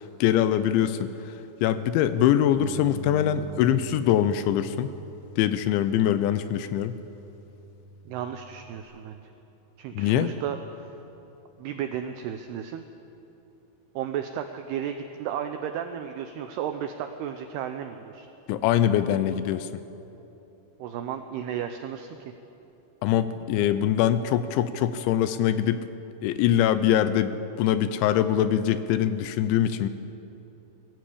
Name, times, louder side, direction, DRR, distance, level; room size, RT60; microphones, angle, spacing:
voice 1, 0.2-1.3 1.6-4.9 5.4-6.9 9.9-10.3 18.5-19.8 23.0-25.8 26.2-29.9, left 10 dB, 80° left, 12 dB, 2.9 m, -23 dB
Bass guitar, 2.6-8.8, right 2 dB, 60° right, 2.0 m, -44 dB
voice 2, 8.1-9.3 9.8-10.9 11.6-12.8 14.0-18.3 20.8-22.3, right 9 dB, 85° right, 7 dB, 2.3 m, -34 dB
21.0 x 15.0 x 8.5 m, 3.0 s
omnidirectional pair, 5.6 m